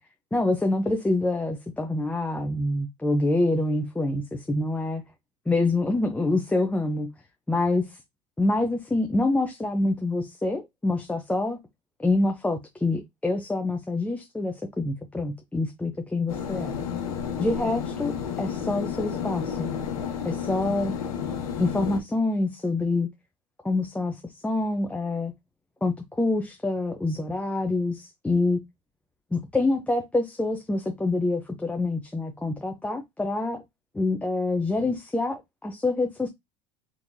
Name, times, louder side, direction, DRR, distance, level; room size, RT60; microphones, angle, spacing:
voice 1, 0.3-5.0 5.5-7.1 7.5-8.0 8.4-11.6 12.0-16.8 17.4-19.7 20.2-20.9 21.6-23.1 23.6-25.3 25.8-28.6 29.3-33.6 33.9-36.3, left 2 dB, 5° left, 0.6 m, -26 dB
sound 1, 16.3-22.0, left 7 dB, 85° left, 0.9 m, -31 dB
3.7 x 2.9 x 2.6 m
supercardioid pair, 100°, 18 cm